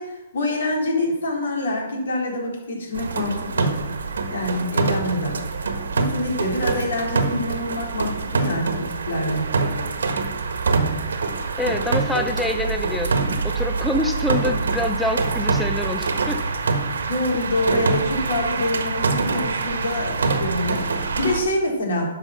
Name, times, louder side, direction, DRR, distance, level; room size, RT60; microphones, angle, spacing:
voice 1, 0.0-3.7 4.3-5.4 6.0-9.5 17.1-22.1, left 1 dB, 80° left, -1 dB, 3.7 m, -26 dB
sound 1, 2.9-21.4, right 4 dB, 85° right, 1.4 m, -25 dB
voice 2, 11.6-16.4, left 2 dB, 5° left, 5 dB, 0.6 m, -26 dB
10.5 x 5.9 x 6.3 m, 1.0 s
hypercardioid pair, 150°, 0 cm